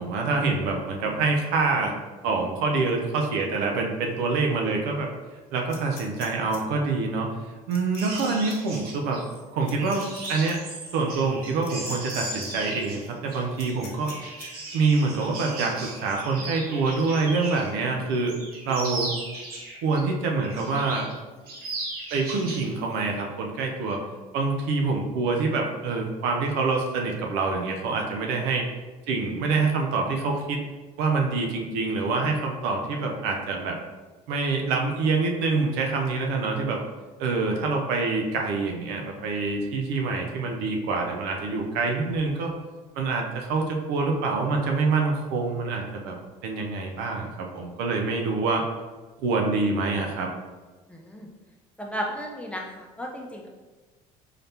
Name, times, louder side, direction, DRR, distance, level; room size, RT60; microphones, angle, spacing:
voice 1, 0.0-1.9 2.2-5.1 5.5-7.3 7.7-9.2 9.5-10.6 10.9-14.1 14.7-18.3 18.6-19.1 19.8-21.1 22.1-24.0 24.3-28.7 29.1-30.6 31.0-33.8 34.3-36.8 37.2-42.5 43.0-46.1 46.4-48.7 49.2-50.3, right 3 dB, 75° right, 1 dB, 0.7 m, -26 dB
sound 1, 5.7-6.6 7.7-8.2 8.5-8.6 9.6-10.5 11.6-12.2 12.4-12.5 13.6-14.5, left 5 dB, 80° left, 0.8 m, -44 dB
sound 2, 8.0-17.8 18.1-20.0 20.4-21.2 21.5-22.7 23.0-23.2, right 2 dB, 60° right, 1.1 m, -37 dB
voice 2, 50.9-51.3 51.8-53.5, equal, 5° left, 0 dB, 0.7 m, -34 dB
4.0 x 3.3 x 2.8 m, 1.3 s
supercardioid pair, 80°, 17 cm